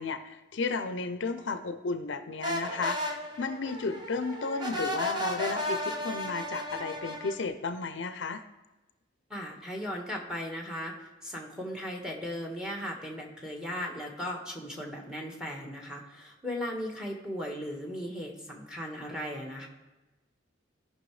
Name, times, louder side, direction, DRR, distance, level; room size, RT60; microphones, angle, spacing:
voice 1, 0.0-8.4, left 4 dB, 70° left, 10 dB, 0.5 m, -33 dB
sound 1, 2.4-7.4, equal, 20° right, 0.9 m, -34 dB
voice 2, 9.3-19.7, equal, 5° right, 1 dB, 1.4 m, -37 dB
16.5 x 5.7 x 3.2 m, 1.1 s
head